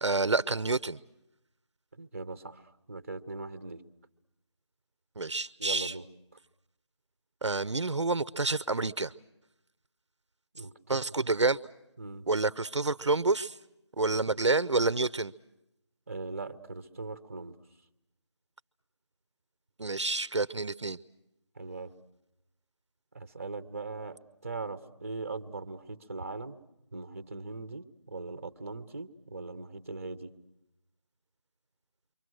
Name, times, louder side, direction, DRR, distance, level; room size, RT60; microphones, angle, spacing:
voice 1, 0.0-1.0 5.2-5.9 7.4-9.1 10.9-11.6 12.3-13.6 14.0-15.3 19.8-21.0, right 3 dB, 65° right, 18 dB, 0.8 m, -28 dB
voice 2, 1.9-2.6 2.9-3.8 5.6-6.1 10.5-11.0 12.0-12.3 16.1-17.6 21.6-21.9 23.1-26.6 26.9-30.3, right 3 dB, 30° right, 12 dB, 0.9 m, -40 dB
28.0 x 24.5 x 6.2 m, 0.88 s
figure-of-eight pair, 170°, 16 cm